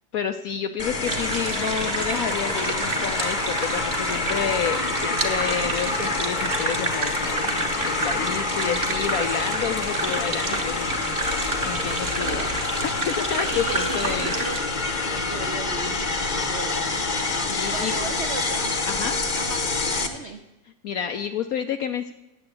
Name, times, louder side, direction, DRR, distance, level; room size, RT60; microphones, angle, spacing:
voice 1, 0.1-11.1 11.6-12.4 12.8-14.3 17.5-17.9 18.9-19.2 20.8-22.1, left 7 dB, 70° left, 8 dB, 0.9 m, -29 dB
sound 1, 0.8-20.1, left 3 dB, 35° left, 0.8 m, -27 dB
sound 2, 1.0-14.6, right 3 dB, 30° right, 1.2 m, -30 dB
voice 2, 12.2-12.8 13.5-14.6 15.0-17.0 17.7-18.7 19.3-20.4, right 3 dB, 65° right, 5 dB, 0.6 m, -36 dB
9.6 x 7.9 x 8.3 m, 0.95 s
omnidirectional pair, 2.1 m